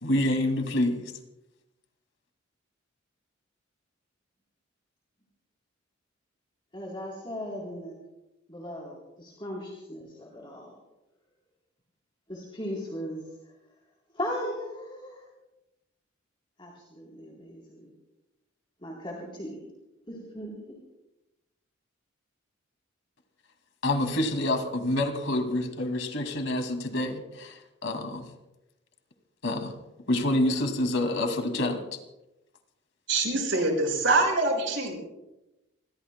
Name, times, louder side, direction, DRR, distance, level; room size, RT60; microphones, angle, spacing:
voice 1, 0.0-1.1 23.8-28.3 29.4-29.8 30.1-32.0, left 1 dB, 70° left, 4 dB, 2.3 m, -27 dB
voice 2, 6.7-7.9 8.5-10.8 12.3-13.3 14.1-15.2 16.6-17.9 18.8-19.7 20.1-20.5, equal, 25° left, -3 dB, 3.4 m, -37 dB
voice 3, 33.1-35.0, right 2 dB, 60° right, 1 dB, 5.6 m, -25 dB
28.5 x 21.5 x 2.2 m, 0.96 s
head